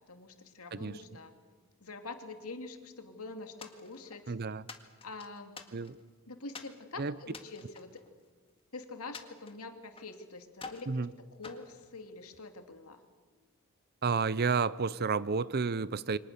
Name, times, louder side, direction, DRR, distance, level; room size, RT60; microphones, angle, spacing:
voice 1, 0.0-1.3 1.8-4.3 5.0-5.6 6.3-8.0 8.7-11.1 11.4-13.0, left 3 dB, 80° left, 6 dB, 2.5 m, -45 dB
voice 2, 0.7-1.0 4.3-4.7 5.7-6.0 7.0-7.2 10.9-11.1 14.0-16.2, right 5 dB, 45° right, 18 dB, 0.6 m, -31 dB
sound 1, 3.6-4.3 4.7-6.1 6.5-6.8 7.3-8.6 9.1-10.2 10.5-10.9 11.4-12.5, left 4 dB, 25° left, 1.9 m, -49 dB
28.0 x 25.0 x 6.8 m, 1.5 s
head